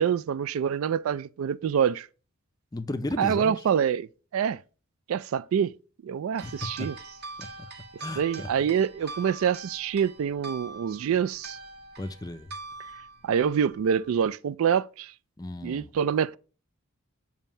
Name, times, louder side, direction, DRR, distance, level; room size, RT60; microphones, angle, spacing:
voice 1, 0.0-2.1 3.2-4.1 4.3-4.6 5.1-5.7 6.0-7.0 8.2-11.6 13.2-15.1 15.6-16.4, right 8 dB, 85° right, 0.3 m, -26 dB
voice 2, 2.7-3.6 6.4-6.9 7.4-7.5 8.0-8.5 9.1-9.2 12.0-12.5 15.4-15.9, left 2 dB, 20° left, 0.4 m, -35 dB
sound 1, 6.4-14.3, right 3 dB, 50° right, 1.0 m, -43 dB
7.1 x 2.7 x 5.5 m
head